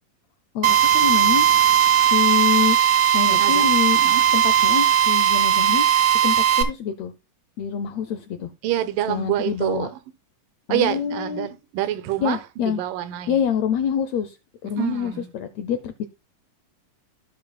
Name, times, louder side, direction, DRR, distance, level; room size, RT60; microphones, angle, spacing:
voice 1, 0.5-1.5 2.0-2.8 3.1-4.0 4.3-5.9 6.2-7.1 7.6-8.5 9.1-9.9 10.7-11.5 12.2-12.8 13.3-14.4 14.6-16.1, left 8 dB, 80° left, 1.5 m, -26 dB
Drill, 0.6-6.6, right 9 dB, 50° right, 1.6 m, -18 dB
voice 2, 3.3-3.7 4.0-4.2 8.6-9.9 10.7-13.4 14.8-15.3, right 13 dB, 85° right, 2.5 m, -26 dB
16.5 x 6.0 x 2.2 m
omnidirectional pair, 3.9 m